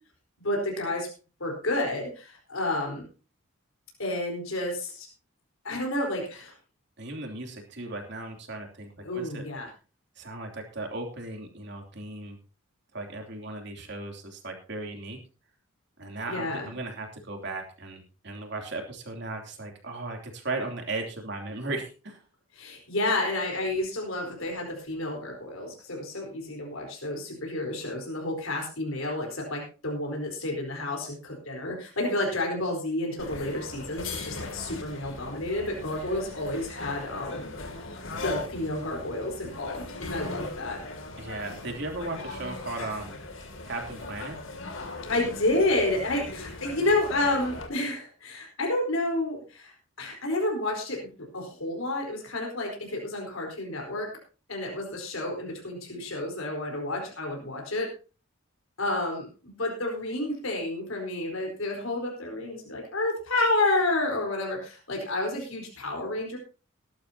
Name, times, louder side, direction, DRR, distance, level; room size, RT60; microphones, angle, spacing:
voice 1, 0.4-1.1 1.4-3.1 4.0-5.1 5.6-6.5 9.0-9.7 16.3-16.7 22.5-37.5 37.8-40.8 45.1-54.1 54.5-57.9 58.8-66.4, left 2 dB, 85° left, 0 dB, 4.3 m, -30 dB
voice 2, 7.0-9.4 10.2-12.4 12.9-15.2 16.0-22.2 41.2-43.2 43.6-44.4, right 2 dB, 55° right, 2 dB, 3.1 m, -36 dB
sound 1, 33.2-47.7, left 2 dB, 70° left, 2.7 m, -39 dB
19.0 x 11.5 x 2.9 m, 0.35 s
head